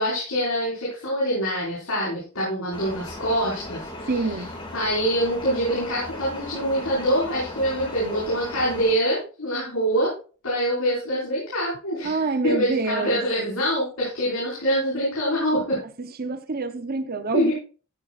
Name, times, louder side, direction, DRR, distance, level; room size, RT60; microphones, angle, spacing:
voice 1, 0.0-4.1 4.7-10.1 10.4-12.2 12.4-15.8 17.3-17.5, equal, 85° left, 5.3 m, -25 dB
sound 1, 2.7-8.9, left 1 dB, 25° left, 2.3 m, -37 dB
voice 2, 4.1-4.5 12.0-13.2 16.0-17.5, right 3 dB, 45° right, 0.8 m, -26 dB
14.5 x 8.5 x 2.5 m
head